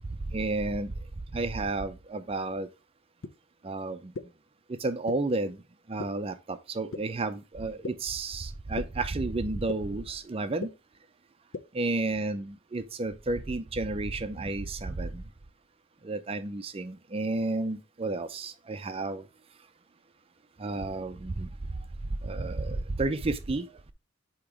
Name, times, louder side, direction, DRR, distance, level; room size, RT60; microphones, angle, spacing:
voice 1, 0.3-0.9 1.3-2.7 3.6-4.0 4.8-5.6 5.9-10.7 11.8-15.1 16.0-19.2 20.6-21.5 22.2-23.6, right 2 dB, 30° right, 0.5 m, -31 dB
sound 1, 3.2-3.3 4.1-4.2 5.1-5.2 6.0-6.1 6.9-7.0 7.8-7.9 8.8-8.9 9.7-9.8 10.6-10.7 11.5-11.6, left 3 dB, 70° left, 0.6 m, -34 dB
8.5 x 2.9 x 4.7 m
head